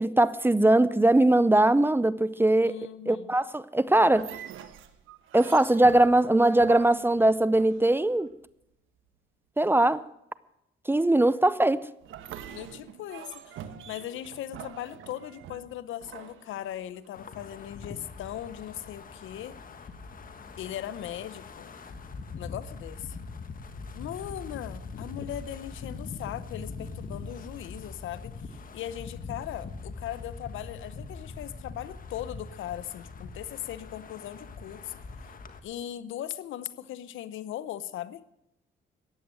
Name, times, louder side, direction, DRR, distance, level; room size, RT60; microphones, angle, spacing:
voice 1, 0.0-2.7 3.1-4.3 5.3-8.3 9.6-10.0 10.9-11.9, right 1 dB, 10° right, 17 dB, 0.6 m, -21 dB
voice 2, 2.6-3.4 12.5-19.5 20.6-21.7 22.4-23.2 23.9-35.0 35.6-38.2, left 12 dB, 80° left, 16 dB, 0.8 m, -39 dB
sound 1, 4.0-8.3 12.0-17.1, right 9 dB, 85° right, 1.2 m, -45 dB
Wind, 17.1-35.6, left 4 dB, 45° left, 1.5 m, -42 dB
14.5 x 9.7 x 7.7 m, 0.81 s
cardioid pair, 90°, 20 cm